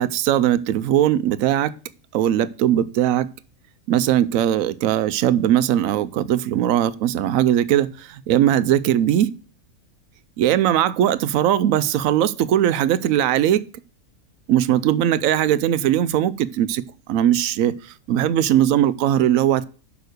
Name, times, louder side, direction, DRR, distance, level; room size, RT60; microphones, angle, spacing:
voice 1, 0.0-1.8 2.1-3.3 3.9-9.3 10.4-13.7 14.5-19.6, right 11 dB, 70° right, 0.9 m, -19 dB
6.6 x 5.5 x 6.5 m
omnidirectional pair, 1.5 m